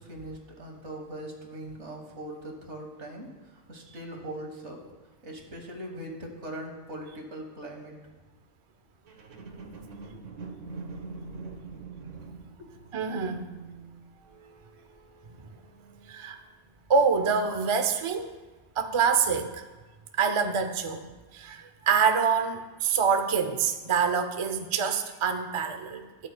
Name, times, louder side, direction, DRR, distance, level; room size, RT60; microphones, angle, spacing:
voice 1, 0.0-3.3 3.7-4.8 5.2-7.9 10.3-10.5 11.2-11.6 12.6-12.7, right 1 dB, 70° right, 2 dB, 1.7 m, -41 dB
sound 1, 9.1-16.5 17.1-17.2, right 4 dB, 90° right, 1.3 m, -44 dB
voice 2, 12.9-13.4 16.1-16.4 16.9-18.4 18.8-19.6 20.2-21.1 21.3-26.3, right 6 dB, 40° right, 7 dB, 0.4 m, -26 dB
13.0 x 9.1 x 2.2 m, 1.3 s
omnidirectional pair, 1.2 m